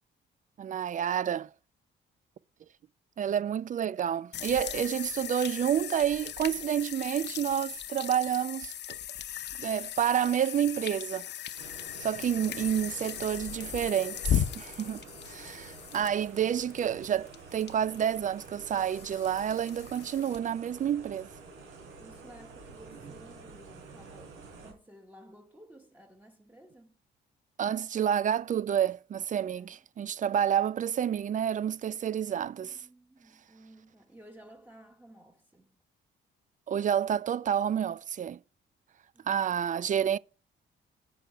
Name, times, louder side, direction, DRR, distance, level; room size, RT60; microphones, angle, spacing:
voice 1, 0.6-1.5 3.2-9.0 9.6-11.3 12.0-21.3 27.6-32.9 36.7-38.4 39.2-40.2, right 9 dB, 40° right, 0.4 m, -29 dB
sound 1, 4.3-20.4, left 10 dB, 60° left, 0.7 m, -37 dB
sound 2, 11.6-24.7, right 4 dB, 90° right, 4.0 m, -49 dB
voice 2, 22.0-27.0 29.6-29.8 32.6-35.8 39.1-39.7, right 1 dB, 10° right, 1.3 m, -55 dB
8.5 x 6.5 x 4.5 m
cardioid pair, 90°, 20 cm